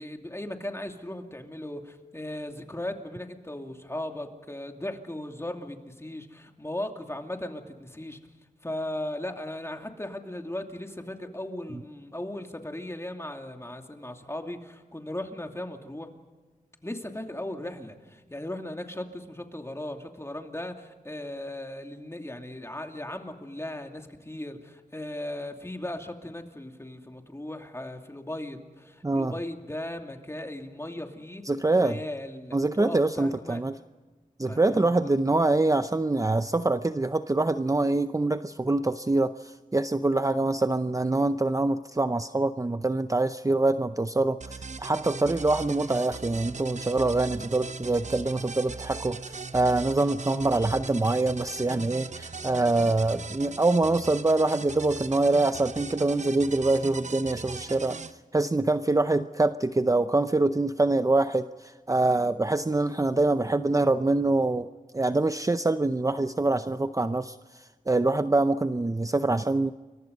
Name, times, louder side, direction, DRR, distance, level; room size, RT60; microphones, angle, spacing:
voice 1, 0.0-8.2 8.6-16.1 16.8-31.4 31.8-33.6 34.4-35.1, left 1 dB, 20° left, 4 dB, 2.7 m, -37 dB
voice 2, 31.5-32.0 32.5-33.8 34.4-58.0 58.3-64.7 64.9-69.7, right 2 dB, 25° right, 11 dB, 0.6 m, -25 dB
sound 1, 44.4-58.1, right 4 dB, 55° right, 0.9 m, -39 dB
29.0 x 23.5 x 5.4 m, 1.2 s
wide cardioid pair, 60°, 14 cm